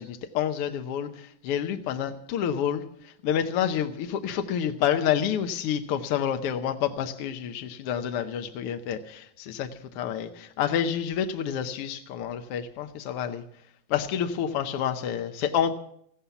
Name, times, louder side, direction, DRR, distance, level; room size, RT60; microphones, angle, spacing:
voice 1, 0.0-13.4 13.9-15.7, left 9 dB, 70° left, 1.5 m, -28 dB
15.0 x 11.5 x 7.0 m
omnidirectional pair, 3.3 m